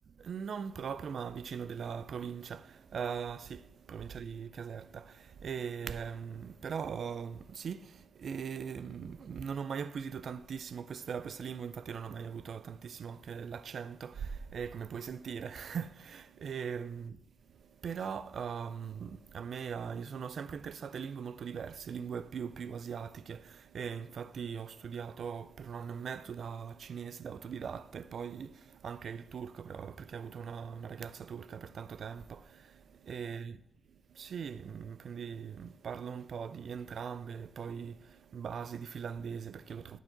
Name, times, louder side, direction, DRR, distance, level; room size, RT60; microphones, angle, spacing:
voice 1, 0.2-33.6 34.1-40.0, right 7 dB, 70° right, 0.3 m, -40 dB
11.0 x 4.6 x 3.9 m
wide cardioid pair, 150°, 0 cm